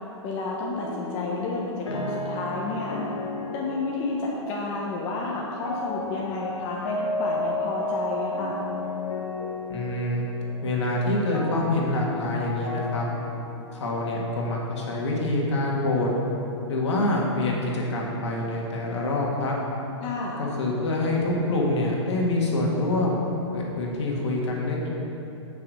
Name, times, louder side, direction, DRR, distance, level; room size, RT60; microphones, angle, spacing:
voice 1, 0.2-3.0 3.5-8.6 20.0-20.4, left 3 dB, 35° left, -3 dB, 1.1 m, -31 dB
sound 1, 0.8-14.8, left 2 dB, 90° left, 1.4 m, -34 dB
voice 2, 9.7-10.2 10.6-13.1 13.7-16.1 16.7-19.6 20.4-24.9, left 2 dB, 70° left, -2 dB, 2.0 m, -26 dB
8.9 x 5.8 x 5.3 m, 2.9 s
hypercardioid pair, 125°, 15 cm